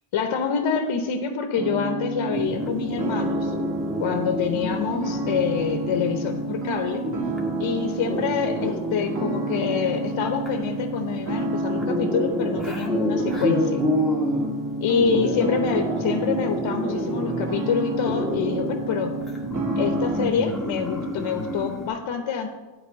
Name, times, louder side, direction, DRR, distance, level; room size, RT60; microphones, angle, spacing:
voice 1, 0.1-3.5 4.0-7.1 7.6-13.8 14.8-19.2 19.8-22.5, left 6 dB, 70° left, 5 dB, 1.0 m, -26 dB
sound 1, 1.5-20.3, right 2 dB, 40° right, 2.6 m, -29 dB
sound 2, 2.3-21.9, left 1 dB, ahead, 1.9 m, -30 dB
8.1 x 4.9 x 7.5 m, 1.2 s
cardioid pair, 65°, 48 cm